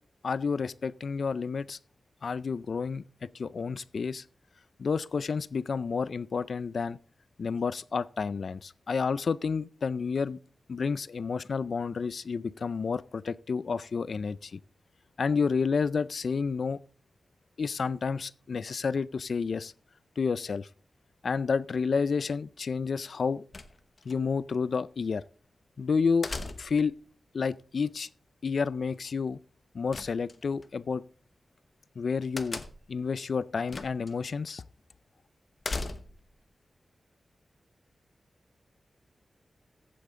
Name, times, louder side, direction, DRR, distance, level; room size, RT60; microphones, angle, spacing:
voice 1, 0.2-1.8 2.2-3.0 3.3-4.2 4.8-7.0 7.4-10.4 10.7-14.6 15.2-16.8 17.6-19.7 20.2-20.7 21.2-23.4 24.1-25.2 25.8-26.3 26.6-26.9 27.3-28.1 28.4-29.4 29.7-31.0 32.0-32.6 32.9-34.6, left 5 dB, 60° left, 0.4 m, -30 dB
sound 1, 23.5-24.2 26.2-26.9 29.9-30.7 32.4-33.0 33.7-34.1 34.5-34.6 35.6-36.3, left 3 dB, 35° left, 1.0 m, -37 dB
15.0 x 8.4 x 3.7 m
wide cardioid pair, 140°, 0 cm